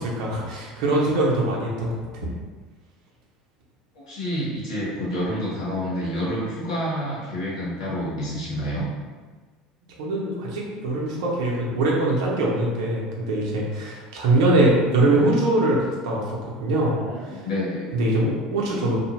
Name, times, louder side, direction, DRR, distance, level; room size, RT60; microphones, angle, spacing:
voice 1, 0.0-2.3 10.0-16.9 17.2-17.4 17.9-19.0, right 2 dB, 75° right, -3 dB, 0.7 m, -22 dB
voice 2, 3.9-8.8 16.7-17.9, equal, 85° left, -7 dB, 1.1 m, -28 dB
2.6 x 2.2 x 2.9 m, 1.4 s
hypercardioid pair, 80°, 3 cm